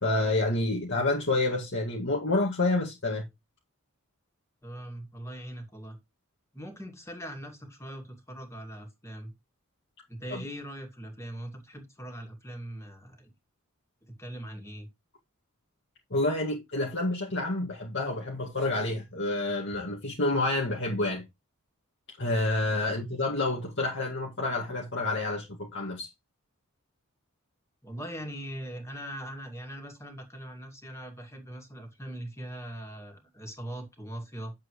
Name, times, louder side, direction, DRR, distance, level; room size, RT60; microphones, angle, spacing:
voice 1, 0.0-3.3 10.3-10.4 16.1-21.3 22.2-26.1, left 2 dB, 55° left, 1.9 m, -28 dB
voice 2, 4.6-6.0 6.5-9.3 10.1-13.3 14.1-14.9 22.8-23.1 27.8-34.5, right 1 dB, 15° left, 2.3 m, -41 dB
9.3 x 7.5 x 3.1 m
head